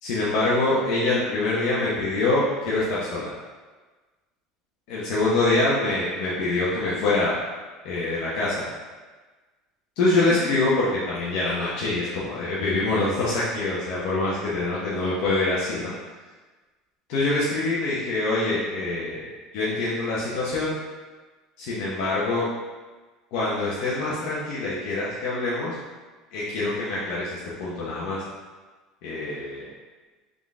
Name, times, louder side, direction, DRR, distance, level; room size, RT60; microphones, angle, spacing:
voice 1, 0.0-3.3 4.9-7.3 7.8-8.6 10.0-15.9 17.1-19.3 19.5-20.7 21.6-22.4 23.3-25.7 26.3-28.2 29.0-29.6, left 2 dB, 70° left, -8 dB, 1.1 m, -25 dB
3.9 x 3.6 x 3.6 m, 1.3 s
supercardioid pair, 125°, 0 cm